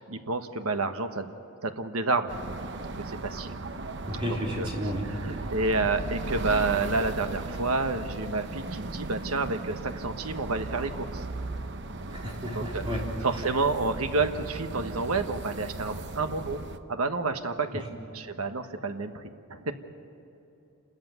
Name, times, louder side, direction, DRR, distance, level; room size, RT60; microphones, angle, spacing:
voice 1, 0.0-1.3 1.6-2.4 3.0-3.6 4.6-4.7 5.0-11.3 12.2-12.8 13.2-16.6 16.9-17.8 18.1-19.2 19.5-19.7, right 3 dB, 80° right, 7 dB, 1.3 m, -29 dB
sound 1, 2.3-16.8, right 2 dB, 50° right, 0.9 m, -37 dB
voice 2, 4.1-5.5 12.1-13.0, equal, 25° right, -2 dB, 3.8 m, -32 dB
28.5 x 14.0 x 9.3 m, 2.8 s
head